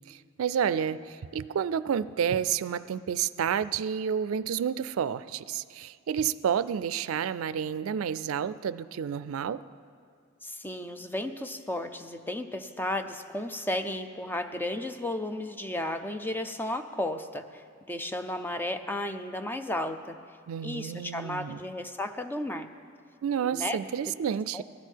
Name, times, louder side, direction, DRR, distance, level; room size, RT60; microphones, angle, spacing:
voice 1, 0.1-9.6 20.5-21.6 23.2-24.6, right 8 dB, 85° right, 15 dB, 0.4 m, -30 dB
voice 2, 10.4-20.2 20.6-22.7 23.5-23.8 24.5-24.6, left 1 dB, 10° left, 7 dB, 0.5 m, -34 dB
16.0 x 12.5 x 4.6 m, 2.2 s
head